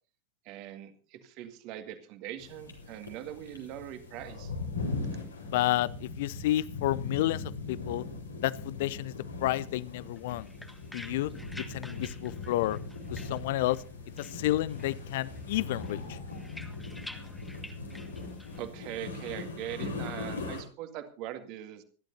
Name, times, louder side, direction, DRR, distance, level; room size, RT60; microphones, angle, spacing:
voice 1, 0.5-4.5 18.6-21.8, right 12 dB, 40° right, 8 dB, 1.9 m, -41 dB
sound 1, 2.4-20.6, left 3 dB, 80° left, 3.9 m, -40 dB
voice 2, 5.5-8.0 8.4-9.1 9.4-10.5 10.9-11.3 11.6-12.8 13.1-13.8 14.2-16.2, left 15 dB, 50° left, 22 dB, 0.6 m, -30 dB
sound 2, 10.2-13.9 14.2-15.0 15.3-18.6, left 1 dB, 5° left, 1.5 m, -49 dB
26.0 x 11.5 x 2.7 m, 0.37 s
figure-of-eight pair, 90°, 0 cm